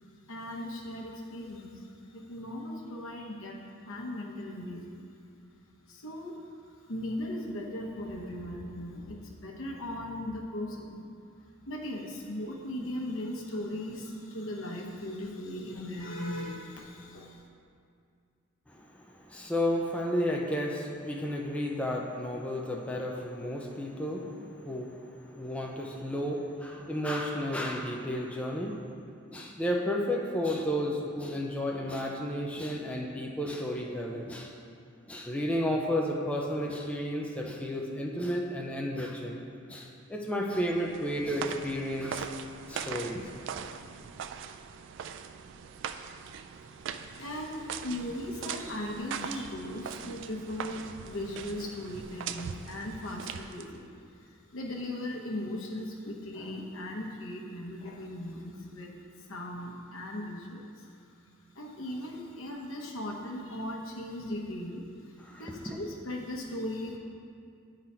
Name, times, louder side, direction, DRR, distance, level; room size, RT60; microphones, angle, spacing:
voice 1, 0.3-3.6 3.9-5.0 5.9-11.1 11.4-17.4 46.6-53.9 54.2-61.2 61.5-67.0, left 1 dB, 75° left, 0 dB, 0.9 m, -38 dB
voice 2, 18.7-28.9 29.3-34.5 35.1-39.4 39.7-42.3 42.7-43.3 65.2-65.8, equal, 5° left, -1 dB, 0.5 m, -32 dB
sound 1, 40.6-53.9, right 7 dB, 60° right, 0.3 m, -41 dB
9.5 x 3.9 x 4.3 m, 2.3 s
head